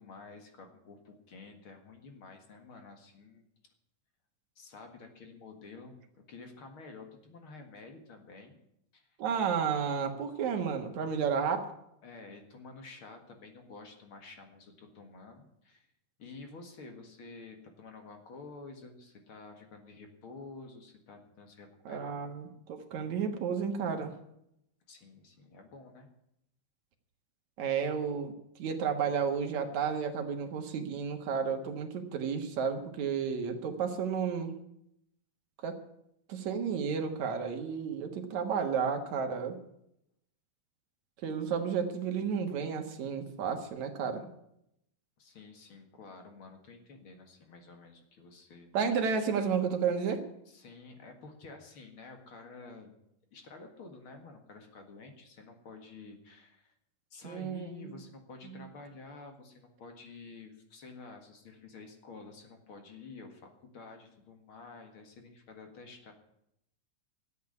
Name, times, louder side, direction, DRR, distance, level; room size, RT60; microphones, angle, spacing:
voice 1, 0.0-3.5 4.6-6.0 6.3-8.6 8.9-9.1 12.0-15.9 16.2-22.2 24.9-26.1 45.2-48.9 50.5-52.9 53.3-56.7 57.1-66.1, left 3 dB, 45° left, 5 dB, 2.3 m, -50 dB
voice 2, 9.2-11.7 21.9-24.1 27.6-28.3 28.6-34.5 35.6-35.8 36.3-39.6 41.2-44.3 48.7-50.2 57.2-58.0 58.5-58.6, right 6 dB, 65° right, 5 dB, 2.7 m, -32 dB
13.0 x 8.3 x 9.6 m, 0.78 s
omnidirectional pair, 3.8 m